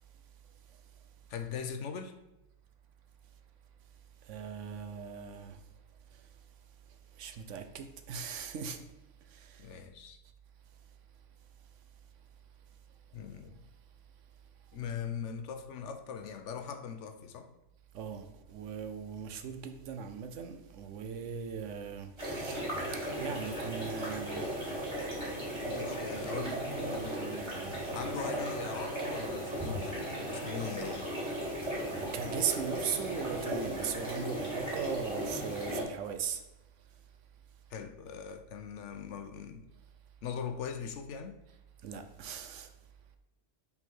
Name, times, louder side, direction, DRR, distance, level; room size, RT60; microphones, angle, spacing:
voice 1, 1.3-2.2 9.6-10.2 13.1-13.6 14.7-17.5 25.6-26.6 26.9-27.2 27.9-31.1 37.7-39.7 40.2-41.4, left 7 dB, 75° left, 1.0 m, -40 dB
voice 2, 4.3-5.6 7.2-8.8 9.4-9.6 17.9-22.6 23.2-24.5 26.1-28.0 31.9-36.4 41.8-42.7, right 7 dB, 80° right, 1.0 m, -39 dB
sound 1, 22.2-35.8, right 1 dB, 20° right, 2.2 m, -36 dB
5.4 x 4.1 x 4.5 m
omnidirectional pair, 1.3 m